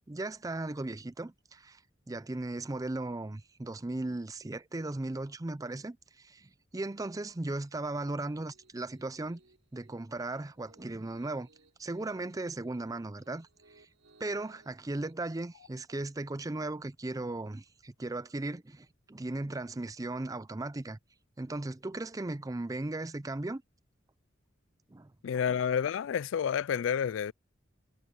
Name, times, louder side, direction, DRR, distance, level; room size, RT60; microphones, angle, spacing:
voice 1, 0.1-1.8 2.1-9.4 9.7-11.5 11.8-13.5 13.7-13.9 14.2-21.0 21.4-23.6 24.9-25.1, right 2 dB, 20° right, 0.5 m, -37 dB
Piano, 8.3-15.1, right 2 dB, 85° right, 5.4 m, -65 dB
voice 2, 25.2-27.3, left 7 dB, 75° left, 0.3 m, -29 dB
head